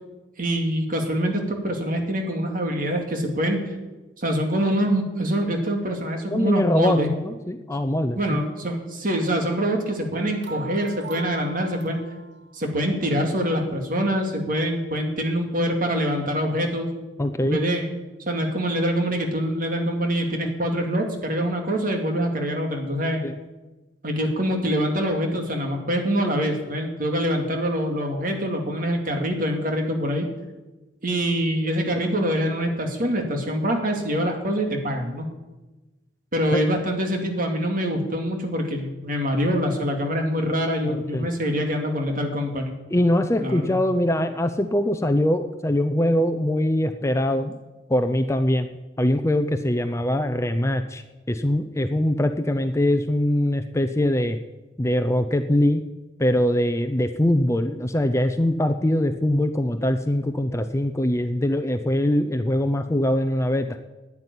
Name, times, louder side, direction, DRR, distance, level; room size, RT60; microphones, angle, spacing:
voice 1, 0.4-3.7 4.2-7.1 8.2-12.0 12.5-16.9 17.4-17.9 18.3-23.2 24.0-30.3 31.0-35.3 36.3-42.7 43.4-43.8, equal, 45° right, 3 dB, 2.5 m, -25 dB
voice 2, 6.3-8.4 17.2-17.6 23.2-23.4 36.5-36.7 40.8-41.3 42.9-47.5 47.9-48.7 49.0-54.4 54.8-55.8 56.2-63.8, left 1 dB, 15° left, 8 dB, 0.6 m, -22 dB
sound 1, 10.1-12.6, right 4 dB, 65° right, 0.9 m, -40 dB
11.5 x 9.7 x 9.8 m, 1.1 s
head